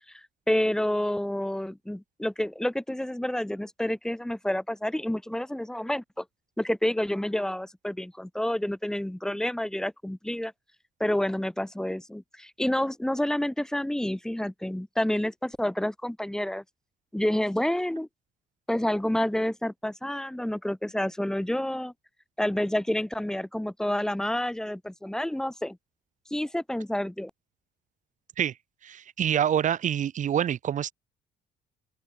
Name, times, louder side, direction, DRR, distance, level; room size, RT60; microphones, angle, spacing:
voice 1, 0.1-6.2 6.6-10.5 11.0-16.6 17.1-18.1 18.7-21.9 22.4-25.8 26.3-27.3, left 1 dB, 5° left, 1.8 m, -29 dB
voice 2, 28.8-30.9, right 9 dB, 50° right, 1.5 m, -26 dB
open air
cardioid pair, 110°, 17 cm